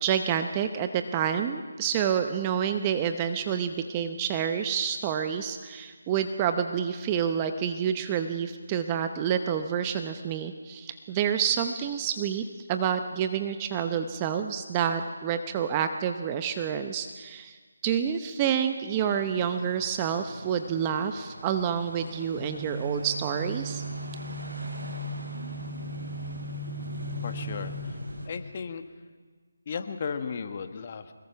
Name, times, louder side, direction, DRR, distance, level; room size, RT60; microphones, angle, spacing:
voice 1, 0.0-17.5 17.8-23.8, right 8 dB, 20° right, 8 dB, 0.8 m, -28 dB
sound 1, 18.9-28.3, right 1 dB, 75° right, 7.5 m, -41 dB
sound 2, 22.4-27.9, equal, 20° left, 4.3 m, -37 dB
voice 2, 27.2-27.9 28.2-28.8 29.7-31.1, left 6 dB, 35° left, 8 dB, 1.4 m, -35 dB
24.0 x 21.5 x 5.8 m, 1.5 s
figure-of-eight pair, 160°, 0 cm